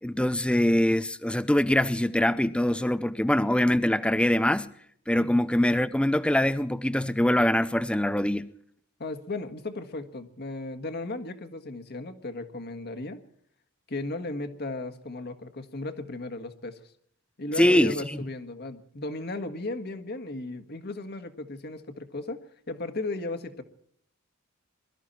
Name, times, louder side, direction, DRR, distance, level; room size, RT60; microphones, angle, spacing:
voice 1, 0.0-4.7 5.1-8.5 17.6-18.2, left 1 dB, 5° left, 0.6 m, -23 dB
voice 2, 5.2-5.5 9.0-13.2 13.9-16.9 17.4-22.4 22.7-23.6, left 2 dB, 50° left, 1.7 m, -35 dB
22.5 x 13.0 x 4.3 m
head